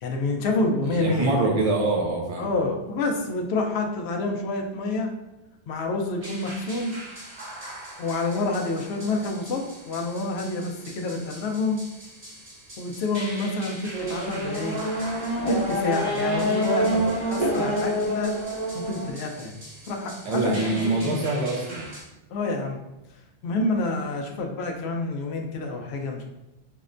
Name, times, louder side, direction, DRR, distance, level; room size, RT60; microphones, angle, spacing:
voice 1, 0.0-1.3 2.4-5.1 5.7-6.9 8.0-11.8 12.8-13.8 14.1-14.8 15.5-18.3 18.7-19.5 19.9-21.1 22.3-22.8 23.4-26.2, left 2 dB, 75° left, 2 dB, 0.8 m, -28 dB
voice 2, 0.9-2.5 16.8-17.1 20.2-21.9, right 2 dB, 60° right, 0 dB, 0.3 m, -25 dB
sound 1, 6.2-22.0, right 1 dB, 90° right, 1.7 m, -42 dB
Race car auto racing / Accelerating revving vroom, 13.9-19.1, equal, 30° right, 0.7 m, -26 dB
5.5 x 2.1 x 2.5 m, 0.97 s
omnidirectional pair, 1.1 m